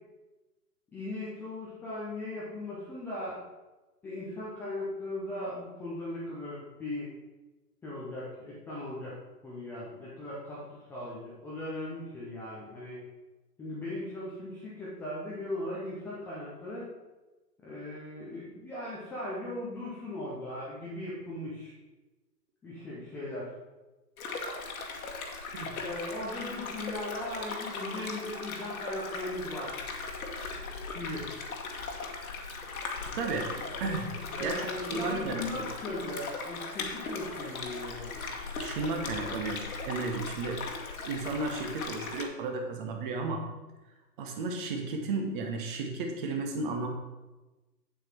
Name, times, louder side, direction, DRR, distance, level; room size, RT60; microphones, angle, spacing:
voice 1, 0.9-3.4 4.0-7.1 7.8-9.2 9.4-13.0 13.6-16.9 17.6-21.7 22.6-23.5 25.8-29.8 30.9-31.3 34.4-38.2, left 1 dB, 5° left, -8 dB, 0.6 m, -38 dB
sound 1, 24.2-42.2, left 4 dB, 60° left, 1.7 m, -38 dB
voice 2, 33.1-35.6 38.6-40.7 41.0-43.5 44.2-46.9, right 3 dB, 30° right, 3 dB, 1.4 m, -34 dB
8.1 x 7.6 x 4.5 m, 1.1 s
figure-of-eight pair, 130°, 49 cm